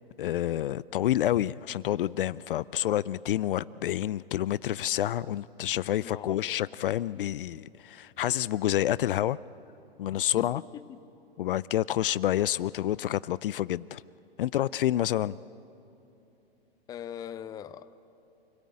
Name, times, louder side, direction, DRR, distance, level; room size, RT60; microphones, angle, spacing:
voice 1, 0.2-9.4 10.0-10.6 11.4-14.0 14.4-15.4, left 12 dB, 60° left, 0.5 m, -28 dB
voice 2, 5.9-6.6 10.4-11.0 16.9-18.1, left 9 dB, 10° left, 0.5 m, -42 dB
28.0 x 17.5 x 8.7 m
hypercardioid pair, 115°, 30 cm